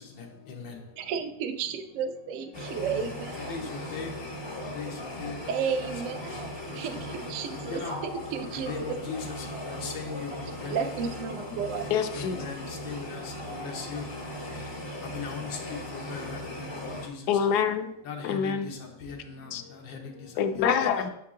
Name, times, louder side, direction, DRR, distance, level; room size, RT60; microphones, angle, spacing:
voice 1, 1.0-3.6 5.5-6.4 6.7-9.0 10.7-11.9, right 6 dB, 65° right, 6 dB, 0.8 m, -33 dB
sound 1, 2.5-17.1, left 1 dB, 30° left, 0.5 m, -38 dB
voice 2, 8.6-9.2 9.7-10.3 10.6-10.7 12.2-12.6 12.9-13.2 13.6-14.0 15.1-15.5 15.9-16.4 18.1-18.2 19.0-19.1 19.9-20.0, left 6 dB, 90° left, 2 dB, 1.7 m, -37 dB
voice 3, 11.9-12.4 17.3-17.9 18.2-18.7 19.5-19.6 20.4-21.1, left 7 dB, 70° left, 9 dB, 1.0 m, -26 dB
7.0 x 4.6 x 3.6 m, 0.74 s
omnidirectional pair, 2.0 m